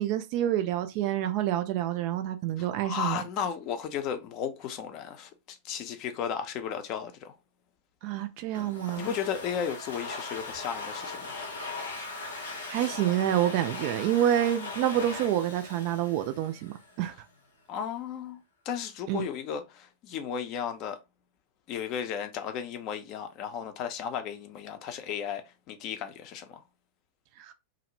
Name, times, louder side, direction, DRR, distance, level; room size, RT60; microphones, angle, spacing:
voice 1, 0.0-3.2 8.0-9.1 12.7-17.1 19.1-19.2 27.4-27.5, right 11 dB, 45° right, 0.3 m, -28 dB
voice 2, 2.6-7.3 8.9-11.3 17.7-18.4 18.7-21.0 21.7-26.6, left 8 dB, 40° left, 0.5 m, -34 dB
Domestic sounds home sounds, 8.5-17.0, left 3 dB, 70° left, 0.7 m, -39 dB
2.5 x 2.0 x 3.0 m
figure-of-eight pair, 90°, 0 cm